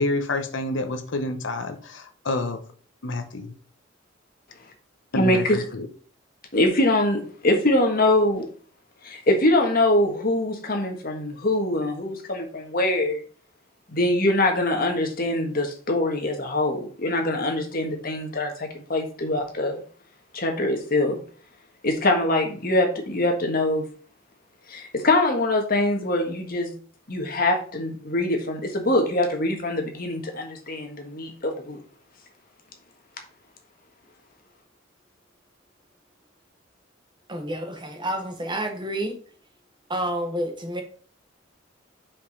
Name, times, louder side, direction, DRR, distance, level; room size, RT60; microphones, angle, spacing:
voice 1, 0.0-2.6 3.0-3.5 5.1-5.9, left 2 dB, 70° left, 0.9 m, -28 dB
voice 2, 5.1-5.6 6.5-8.4 9.0-13.2 13.9-19.8 20.3-21.2 21.8-23.9 24.7-26.7 27.1-31.8, left 1 dB, 45° left, 1.6 m, -23 dB
voice 3, 37.3-39.2 39.9-40.8, right 1 dB, 25° right, 1.3 m, -29 dB
5.3 x 5.2 x 5.4 m
head